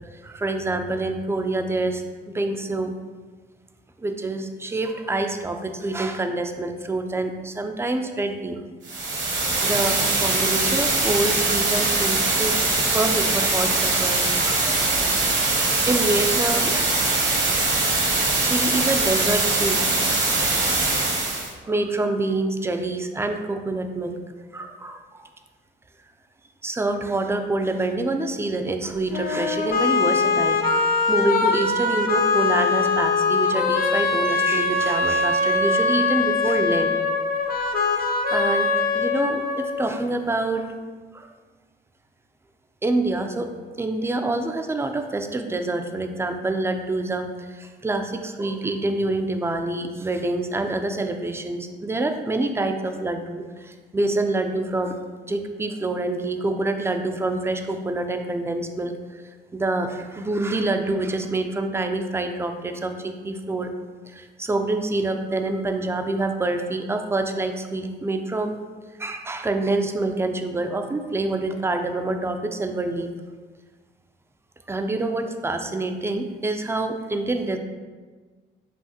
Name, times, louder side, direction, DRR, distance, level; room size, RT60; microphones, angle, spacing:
voice 1, 0.1-2.9 4.0-8.6 9.6-17.3 18.4-19.8 20.4-20.6 21.0-24.2 24.5-25.3 26.6-37.0 38.3-38.7 38.9-40.7 41.1-41.3 42.8-43.5 43.8-55.0 55.3-59.2 59.5-63.7 64.1-68.6 69.0-73.1 74.7-77.6, right 2 dB, 15° right, 6 dB, 0.3 m, -26 dB
sound 1, 8.8-21.5, right 3 dB, 65° right, 1.0 m, -22 dB
saxophone weep, 29.1-40.1, left 4 dB, 45° left, 0.5 m, -22 dB
5.7 x 2.5 x 2.8 m, 1.4 s
cardioid pair, 90°, 20 cm